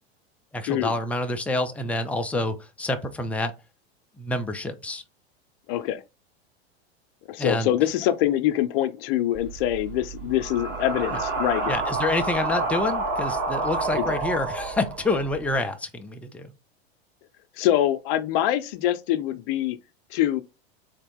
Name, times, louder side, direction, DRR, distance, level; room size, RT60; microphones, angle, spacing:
voice 1, 0.5-3.5 4.2-5.0 7.4-7.7 11.1-11.2 11.7-16.5, left 2 dB, 5° left, 0.4 m, -27 dB
voice 2, 5.7-6.0 7.3-11.8 13.9-14.2 17.6-19.8 20.1-20.4, left 12 dB, 55° left, 0.7 m, -24 dB
sound 1, 9.3-15.5, right 3 dB, 45° right, 2.5 m, -29 dB
3.6 x 2.9 x 3.5 m
hypercardioid pair, 100°, 33 cm